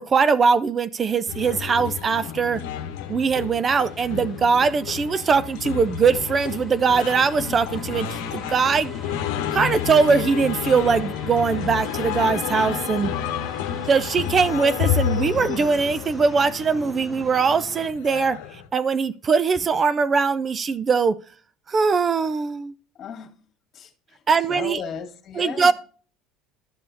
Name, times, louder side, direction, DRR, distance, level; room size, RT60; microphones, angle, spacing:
voice 1, 0.0-2.6 3.1-8.1 8.3-8.9 9.5-13.1 13.9-18.4 18.7-21.2 21.7-22.7 24.3-24.8 25.3-25.7, right 5 dB, 35° right, 0.4 m, -21 dB
sound 1, 1.3-18.7, left 9 dB, 80° left, 0.9 m, -30 dB
sound 2, 1.8-17.9, left 1 dB, 5° right, 1.3 m, -42 dB
voice 2, 23.0-23.4 23.7-24.2 24.5-25.7, left 7 dB, 45° left, 1.9 m, -35 dB
12.5 x 5.4 x 2.7 m
supercardioid pair, 90°, 0 cm